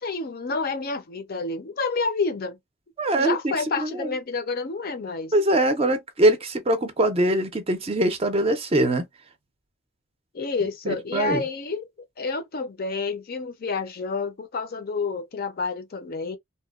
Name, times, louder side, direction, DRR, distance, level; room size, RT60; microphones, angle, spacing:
voice 1, 0.0-2.6 3.2-5.3 10.3-11.9 12.2-16.4, left 4 dB, 45° left, 0.5 m, -29 dB
voice 2, 3.0-3.5 3.9-4.1 5.3-9.0 10.9-11.4, right 1 dB, 30° right, 0.5 m, -22 dB
2.8 x 2.0 x 2.3 m
head